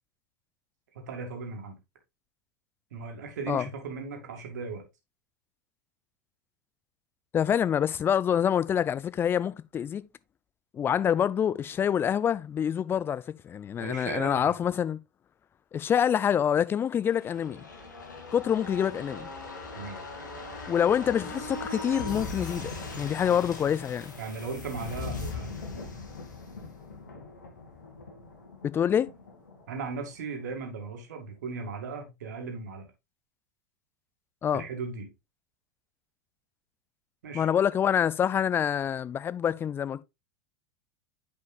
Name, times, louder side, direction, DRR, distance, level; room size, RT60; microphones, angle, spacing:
voice 1, 0.9-1.8 2.9-4.8 13.8-14.5 19.7-20.0 24.2-25.6 29.7-32.9 34.5-35.1 37.2-37.5, right 4 dB, 65° right, 2.1 m, -37 dB
voice 2, 7.3-10.0 10.7-15.0 15.7-17.7 18.3-19.3 20.7-24.1 28.6-29.1 34.4-34.6 37.3-40.0, left 8 dB, 20° left, 0.4 m, -26 dB
sound 1, 17.0-30.5 30.8-30.9, left 3 dB, 70° left, 2.1 m, -40 dB
9.2 x 5.1 x 2.4 m
figure-of-eight pair, 85°, 10 cm